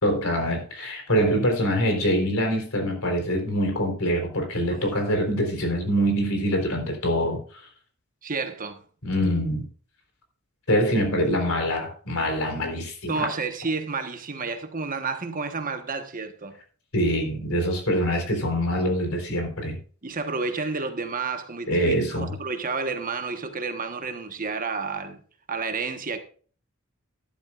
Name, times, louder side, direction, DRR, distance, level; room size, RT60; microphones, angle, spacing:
voice 1, 0.0-7.6 9.0-9.7 10.7-13.3 16.9-19.8 21.7-22.3, equal, 70° left, 4.0 m, -24 dB
voice 2, 8.2-8.8 13.1-16.6 20.0-25.2 25.5-26.2, right 4 dB, 40° right, 1.2 m, -30 dB
12.0 x 11.5 x 2.5 m
head